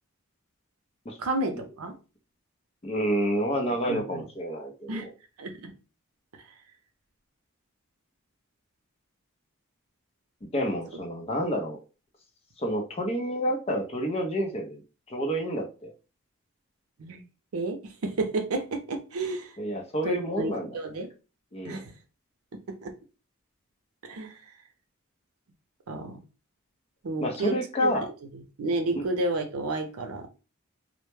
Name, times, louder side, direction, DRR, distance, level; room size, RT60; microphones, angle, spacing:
voice 1, 1.2-2.0 3.8-4.0 4.9-5.1 5.4-5.7 17.0-17.2 17.5-19.5 20.0-21.1 21.6-21.9 22.5-22.9 24.0-24.4 25.9-26.2 27.0-27.9 28.6-30.3, right 2 dB, 85° right, 0.5 m, -31 dB
voice 2, 2.8-5.1 10.5-11.8 12.6-14.8 15.1-15.9 19.6-20.8 21.5-21.8 27.2-28.1 29.0-29.1, equal, 30° left, 0.5 m, -29 dB
2.1 x 2.0 x 3.0 m
head